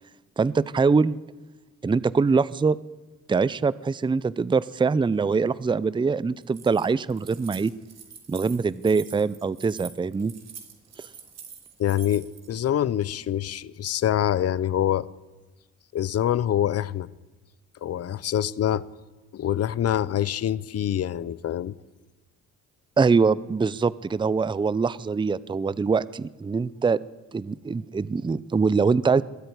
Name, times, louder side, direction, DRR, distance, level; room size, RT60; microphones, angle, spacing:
voice 1, 0.4-1.2 1.8-2.8 3.3-7.7 8.3-10.3 11.0-11.1 23.0-27.0 27.3-29.2, right 4 dB, 15° right, 0.5 m, -23 dB
Keys jangling, 6.4-12.5, right 7 dB, 60° right, 3.4 m, -45 dB
voice 2, 11.8-15.1 15.9-17.1 17.8-18.9 19.3-21.7, left 11 dB, 55° left, 0.8 m, -25 dB
21.0 x 13.0 x 9.7 m
cardioid pair, 90°, 30 cm